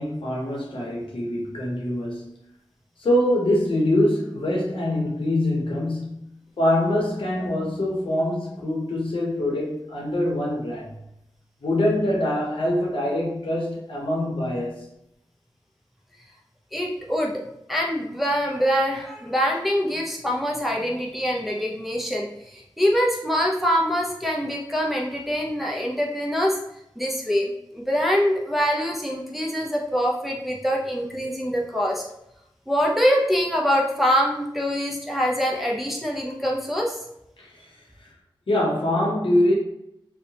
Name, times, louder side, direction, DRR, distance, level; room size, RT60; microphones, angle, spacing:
voice 1, 0.0-2.3 3.0-6.3 6.6-11.0 11.6-14.9 37.4-38.1 38.5-39.5, left 1 dB, 75° left, -2 dB, 0.8 m, -24 dB
voice 2, 16.7-17.3 17.7-26.5 27.0-32.0 32.7-37.0, equal, ahead, -2 dB, 0.5 m, -24 dB
2.8 x 2.1 x 2.7 m, 0.80 s
wide cardioid pair, 80°, 9 cm